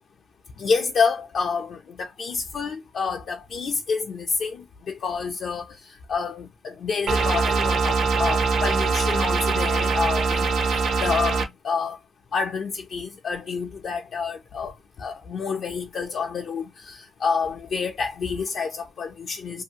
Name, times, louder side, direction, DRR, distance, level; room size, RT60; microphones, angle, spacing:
voice 1, 0.6-4.6 5.0-5.7 6.1-12.0 12.3-14.7 15.0-19.6, left 5 dB, 60° left, 0.5 m, -28 dB
sound 1, 7.1-11.5, right 4 dB, 70° right, 0.6 m, -22 dB
2.6 x 2.4 x 2.7 m
cardioid pair, 120°, 0 cm